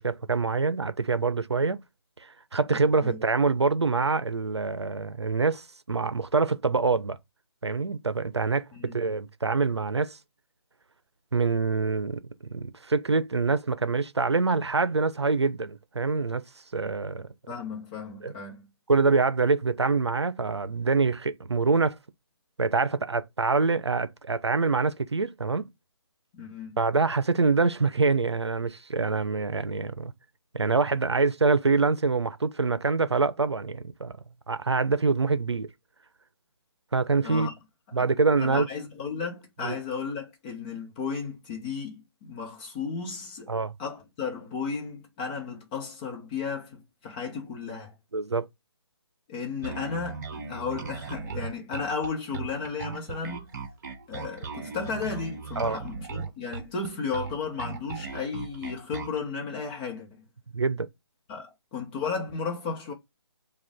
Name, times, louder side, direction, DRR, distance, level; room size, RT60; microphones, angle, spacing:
voice 1, 0.0-1.8 2.5-7.2 7.6-10.2 11.3-16.4 16.7-17.3 18.2-18.3 18.9-22.0 22.6-25.7 26.8-30.1 30.5-34.1 34.5-35.7 36.9-37.5 37.9-38.7 39.6-39.7 43.5-43.7 48.1-48.5 55.6-55.8 60.5-60.9, right 4 dB, 90° right, 0.6 m, -25 dB
voice 2, 17.5-18.6 26.3-26.8 37.2-37.5 38.0-38.1 38.4-43.5 43.8-47.9 49.3-53.5 54.1-60.1 61.3-62.9, left 5 dB, 20° left, 1.0 m, -34 dB
Bass guitar, 49.6-59.2, right 5 dB, 45° right, 0.8 m, -38 dB
4.9 x 2.4 x 3.5 m
figure-of-eight pair, 150°, 14 cm